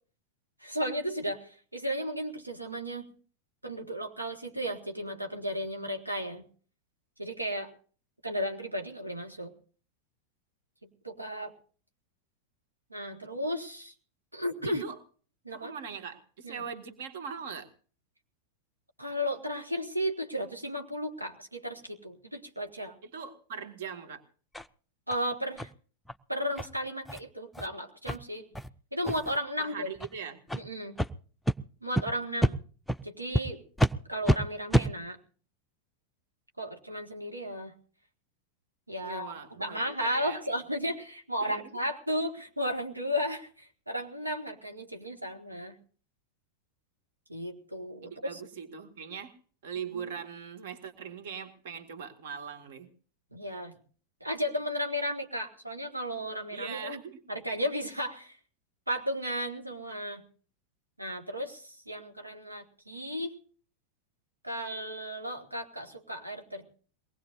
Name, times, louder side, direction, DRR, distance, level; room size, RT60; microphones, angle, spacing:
voice 1, 0.6-3.1 3.6-6.4 7.2-7.7 8.2-9.5 11.0-11.5 12.9-13.9 14.3-14.8 15.4-15.7 16.4-16.6 19.0-22.9 25.1-25.7 26.3-28.5 28.9-29.9 30.6-31.0 31.8-32.6 33.0-33.6 34.1-35.2 36.6-37.7 38.9-39.3 39.6-45.8 47.3-48.4 49.9-50.1 53.3-53.7 54.2-57.0 57.3-58.4 58.9-60.2 61.0-63.4 64.4-66.7, equal, 85° right, 3 dB, 1.9 m, -34 dB
voice 2, 14.7-15.0 15.5-17.7 23.0-24.2 29.6-30.4 39.0-40.5 41.4-41.7 48.0-49.4 49.6-52.9 56.5-57.2, right 6 dB, 55° right, 8 dB, 2.0 m, -41 dB
sound 1, 24.5-24.7 25.1-25.2 25.6-25.7 26.1-26.2 26.6-26.7 27.1-27.2 27.5-27.7 28.1-28.2 28.6-28.7 29.0-29.4 30.0-30.1 30.5-30.6 31.0-31.1 31.5-31.6 32.0-32.1 32.4-32.5 32.9-33.0 33.3-33.4 33.8-33.9 34.3-34.4 34.7-34.9, right 1 dB, ahead, 0.6 m, -27 dB
23.0 x 19.5 x 2.6 m, 0.42 s
figure-of-eight pair, 90°, 0 cm